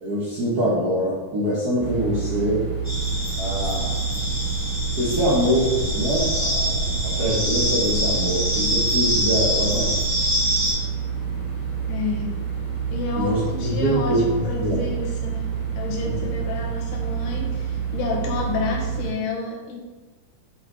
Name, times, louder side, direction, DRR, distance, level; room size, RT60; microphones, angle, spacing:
voice 1, 0.0-2.7 3.4-4.0 5.0-10.0 13.2-14.8 16.0-16.2, equal, 75° right, -7 dB, 0.8 m, -24 dB
sound 1, 1.8-19.1, right 7 dB, 15° right, 1.5 m, -28 dB
sound 2, 2.8-10.7, equal, 15° left, 1.1 m, -25 dB
voice 2, 11.9-12.3 12.9-19.8, left 4 dB, 85° left, -1 dB, 2.8 m, -30 dB
7.9 x 4.5 x 3.8 m, 1.2 s
omnidirectional pair, 3.7 m